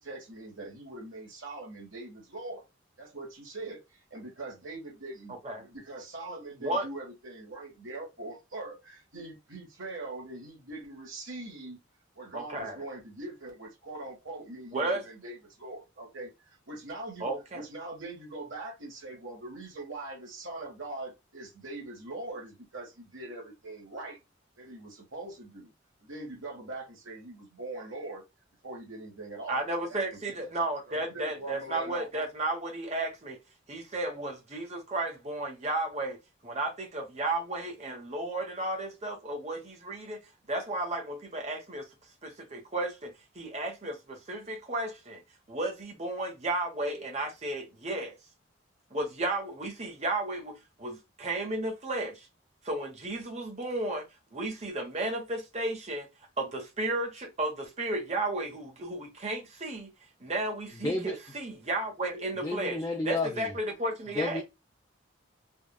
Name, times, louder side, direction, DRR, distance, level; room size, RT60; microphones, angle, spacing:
voice 1, 0.0-2.6 3.0-5.3 5.6-11.8 12.2-24.2 24.6-25.7 26.0-28.2 28.6-29.6 29.9-30.2 30.9-32.2, right 2 dB, 75° right, 1.3 m, -42 dB
voice 2, 12.3-12.8 14.7-15.0 17.2-17.6 29.5-33.4 33.7-36.2 36.4-40.2 40.5-41.9 42.2-45.2 45.5-48.2 48.9-52.3 52.6-54.1 54.3-56.1 56.4-59.9 60.2-64.4, right 2 dB, 35° right, 0.9 m, -33 dB
voice 3, 60.8-61.2 62.4-63.5 64.1-64.4, left 2 dB, 15° left, 0.4 m, -31 dB
3.5 x 2.3 x 2.2 m
head